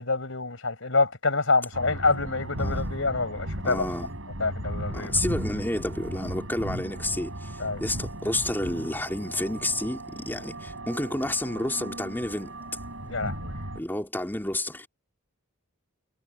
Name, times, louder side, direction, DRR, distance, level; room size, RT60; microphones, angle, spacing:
voice 1, 0.0-3.8 4.4-5.1 7.6-7.8 13.1-13.4, left 3 dB, 70° left, 5.3 m, -26 dB
sound 1, 1.7-13.8, right 1 dB, 70° right, 6.6 m, -36 dB
voice 2, 2.6-2.9 3.6-4.1 4.9-12.6 13.7-14.9, left 1 dB, 10° left, 3.5 m, -30 dB
head